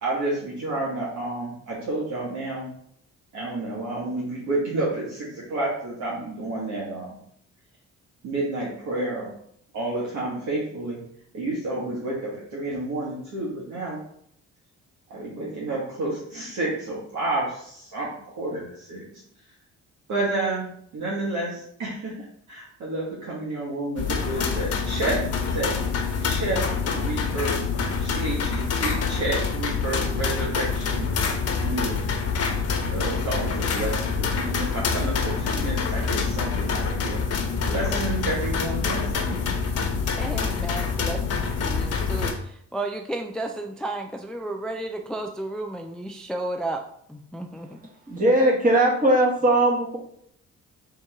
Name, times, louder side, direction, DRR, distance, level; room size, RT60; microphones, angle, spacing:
voice 1, 0.0-2.7 3.3-7.1 8.2-9.3 9.7-11.0 11.3-14.0 15.1-19.0 20.1-25.8 26.2-26.6 26.9-27.6 28.0-31.1 31.6-32.0 32.9-37.2 37.6-39.5, right 2 dB, 75° right, 1.3 m, -30 dB
sound 1, 24.0-42.3, left 5 dB, 55° left, 0.8 m, -26 dB
voice 2, 40.2-47.8, right 2 dB, 5° left, 0.3 m, -33 dB
voice 3, 47.6-50.0, right 1 dB, 25° right, 1.5 m, -20 dB
3.6 x 2.9 x 4.6 m
cardioid pair, 90°, 30 cm